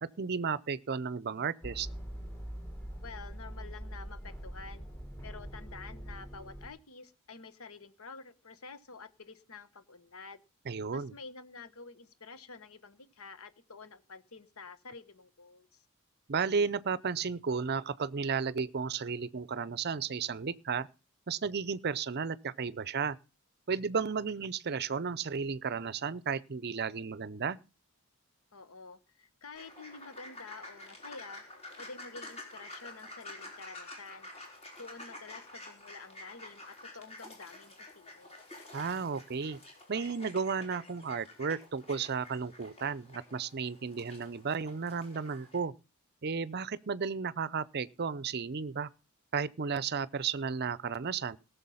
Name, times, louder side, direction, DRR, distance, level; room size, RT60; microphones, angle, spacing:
voice 1, 0.0-1.9 10.7-11.1 16.3-20.9 21.3-23.2 23.7-27.6 38.7-39.6 39.9-45.7 46.2-48.9 49.3-51.4, right 5 dB, 45° right, 0.6 m, -33 dB
sound 1, 1.6-6.7, equal, 10° left, 1.6 m, -43 dB
voice 2, 3.0-4.9 5.2-10.4 10.9-15.8 28.5-31.4 31.8-34.3 34.8-38.3, left 4 dB, 70° left, 1.1 m, -49 dB
sound 2, 29.6-45.6, left 2 dB, 30° left, 3.9 m, -49 dB
18.0 x 7.0 x 5.5 m
head